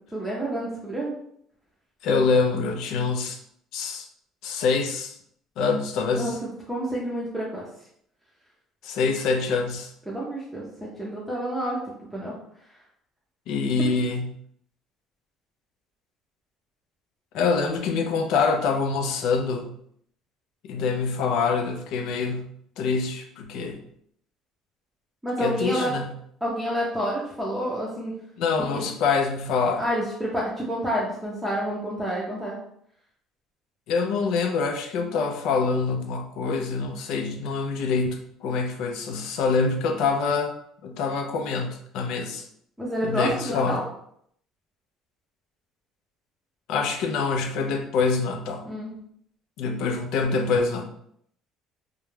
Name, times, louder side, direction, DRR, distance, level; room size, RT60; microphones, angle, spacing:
voice 1, 0.1-1.1 6.2-7.6 10.1-11.8 12.1-12.3 25.2-25.9 26.4-28.1 28.7-28.8 29.8-32.5 42.8-43.8 48.7-48.9, equal, 5° right, -6 dB, 0.6 m, -29 dB
voice 2, 2.0-3.4 3.7-4.1 4.4-5.2 5.6-6.4 8.8-9.9 13.5-14.4 17.3-19.7 20.6-23.8 25.4-26.1 28.4-29.8 33.9-40.5 40.8-42.5 43.0-43.9 46.7-48.7 49.6-50.9, left 4 dB, 75° left, 5 dB, 0.4 m, -25 dB
2.3 x 2.1 x 3.1 m, 0.69 s
cardioid pair, 120°, 0 cm